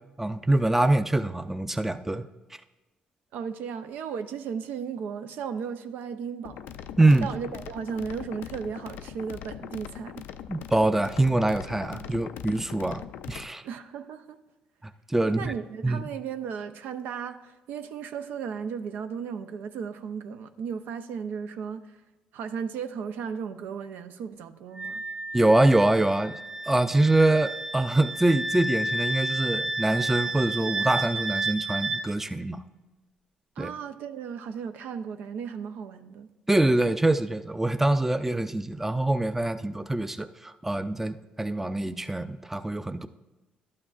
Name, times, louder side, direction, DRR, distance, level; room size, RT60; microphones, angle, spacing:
voice 1, 0.2-2.3 7.0-7.3 10.5-13.0 13.3-13.6 15.1-15.5 15.8-16.1 25.3-26.3 26.7-32.6 33.6-33.7 36.5-43.1, right 2 dB, 10° right, 10 dB, 0.4 m, -24 dB
voice 2, 3.3-6.6 7.2-10.1 12.0-12.1 12.8-12.9 13.6-14.4 15.2-22.0 22.3-25.0 33.6-36.3, right 6 dB, 75° right, 8 dB, 0.5 m, -35 dB
sound 1, 6.4-13.5, left 10 dB, 80° left, 0.3 m, -41 dB
Wind instrument woodwind instrument, 24.8-32.0, right 2 dB, 25° right, 1.5 m, -31 dB
12.0 x 8.6 x 2.4 m, 1.1 s
supercardioid pair, 70°, 3 cm